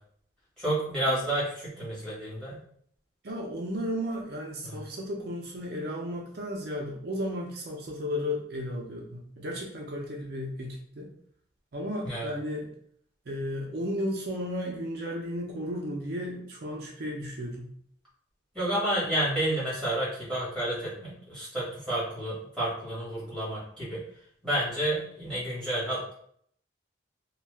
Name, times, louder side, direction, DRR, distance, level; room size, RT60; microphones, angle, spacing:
voice 1, 0.6-2.6 4.6-4.8 12.0-12.3 18.5-24.0 24.4-26.1, right 1 dB, 5° left, -9 dB, 1.5 m, -30 dB
voice 2, 3.2-11.1 11.7-12.7 13.3-17.7, equal, 55° right, -1 dB, 0.4 m, -34 dB
2.6 x 2.2 x 3.3 m, 0.64 s
head